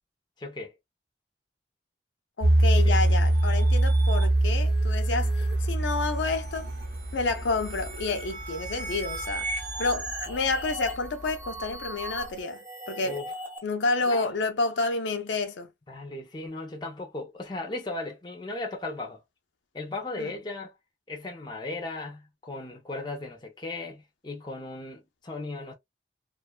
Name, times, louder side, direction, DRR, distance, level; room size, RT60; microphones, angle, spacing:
voice 1, 0.4-0.8 2.7-3.0 13.0-13.3 14.0-14.3 15.9-19.2 19.7-20.7 21.1-25.7, left 2 dB, 25° left, 0.5 m, -37 dB
voice 2, 2.4-6.7 7.1-9.5 9.8-13.2 13.6-15.7 20.2-20.3, left 3 dB, 85° left, 0.5 m, -29 dB
sound 1, 2.4-11.7 12.2-12.3, right 1 dB, 55° right, 0.7 m, -25 dB
sound 2, 2.9-13.6, right 2 dB, 10° right, 0.8 m, -39 dB
2.5 x 2.3 x 2.2 m
head